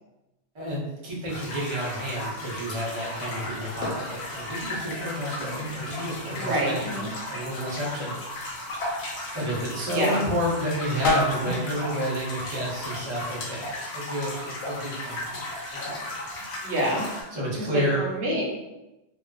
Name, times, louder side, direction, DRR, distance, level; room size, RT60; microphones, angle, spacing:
voice 1, 0.5-8.1 9.3-13.7 13.9-15.4 15.7-16.1 17.3-18.0, equal, 35° right, -5 dB, 0.5 m, -30 dB
sound 1, 1.3-17.2, left 1 dB, 60° left, 0.8 m, -35 dB
sound 2, 2.5-13.1, left 2 dB, 85° left, 1.0 m, -35 dB
voice 2, 6.4-7.1 9.9-10.2 16.6-17.0 18.0-18.4, right 1 dB, 65° right, -4 dB, 0.9 m, -27 dB
2.4 x 2.3 x 2.2 m, 0.99 s
omnidirectional pair, 1.3 m